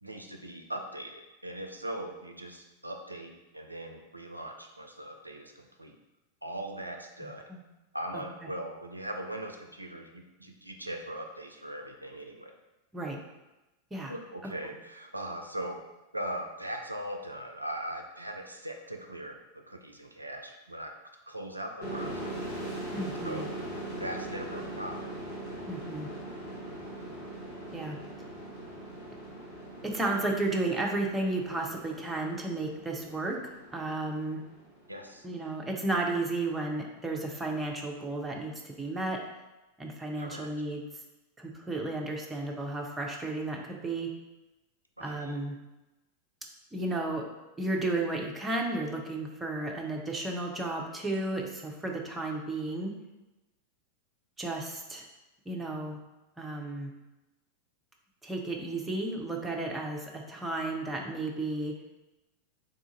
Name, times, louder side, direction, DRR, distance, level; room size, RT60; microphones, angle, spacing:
voice 1, 0.0-6.0 6.4-7.5 7.9-12.5 14.1-15.8 16.1-20.9 21.3-22.3 23.2-23.5 24.0-25.1 34.9-35.3 40.2-40.5 45.0-45.4, right 1 dB, 85° right, 3 dB, 0.3 m, -40 dB
voice 2, 7.2-7.6 8.1-8.2 12.9-13.2 13.9-14.1 14.4-14.7 22.9-23.4 25.7-26.1 27.7-28.0 29.8-33.4 33.7-34.4 35.2-39.2 39.8-40.8 41.4-44.1 45.0-45.6 46.7-47.2 47.6-52.9 54.4-55.1 55.5-56.0 56.4-56.9 58.2-61.7, right 2 dB, 10° right, 0 dB, 0.6 m, -33 dB
sound 1, 21.8-35.2, right 1 dB, 55° left, 1.3 m, -41 dB
3.6 x 2.5 x 3.9 m, 1.0 s
figure-of-eight pair, 90°, 0 cm